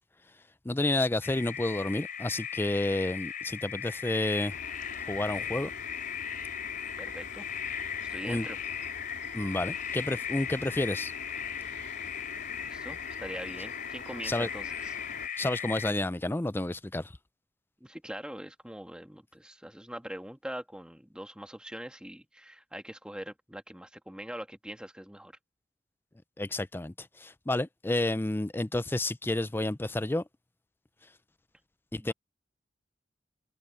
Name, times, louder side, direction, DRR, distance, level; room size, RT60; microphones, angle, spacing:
voice 1, 0.6-4.6 5.1-5.7 8.2-8.5 9.3-11.1 14.2-14.5 15.4-17.1 26.4-30.2 31.9-32.1, left 2 dB, 15° left, 0.5 m, -30 dB
sound 1, 1.2-15.9, left 8 dB, 50° left, 5.2 m, -38 dB
sound 2, 4.5-15.3, left 3 dB, 85° left, 2.3 m, -46 dB
voice 2, 7.0-7.4 8.1-8.6 12.6-14.9 17.8-25.3 32.0-32.1, equal, 5° right, 1.7 m, -42 dB
head